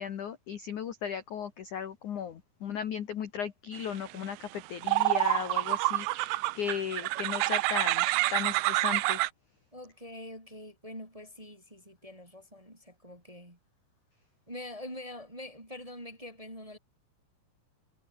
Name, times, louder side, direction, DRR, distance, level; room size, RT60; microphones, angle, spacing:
voice 1, 0.0-8.1 8.3-9.2, left 7 dB, 60° left, 2.2 m, -36 dB
sound 1, 4.2-4.3 4.8-9.3, right 20 dB, 85° right, 2.5 m, -27 dB
voice 2, 9.7-13.6 14.5-16.8, left 1 dB, 10° right, 2.9 m, -45 dB
omnidirectional pair, 5.9 m